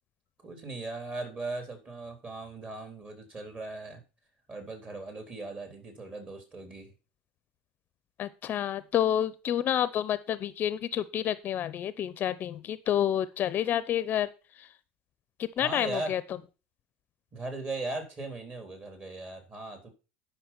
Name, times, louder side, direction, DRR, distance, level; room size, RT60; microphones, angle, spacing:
voice 1, 0.4-4.0 4.5-6.9 15.6-16.2 17.3-19.9, right 2 dB, 30° right, 4 dB, 3.9 m, -38 dB
voice 2, 8.2-14.3 14.6-14.7 15.4-16.2, left 10 dB, 40° left, 16 dB, 0.6 m, -29 dB
11.0 x 5.9 x 5.8 m, 0.32 s
supercardioid pair, 100°, 5 cm